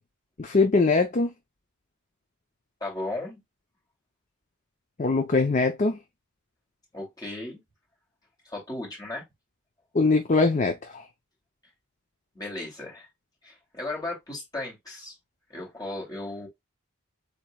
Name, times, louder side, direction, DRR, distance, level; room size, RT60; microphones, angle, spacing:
voice 1, 0.4-1.3 5.0-6.0 9.9-11.0, left 3 dB, 35° left, 0.5 m, -22 dB
voice 2, 2.8-3.4 6.9-7.6 8.4-9.2 12.3-13.1 13.4-15.2 15.5-16.5, left 2 dB, 15° left, 2.5 m, -35 dB
7.4 x 2.9 x 2.2 m
head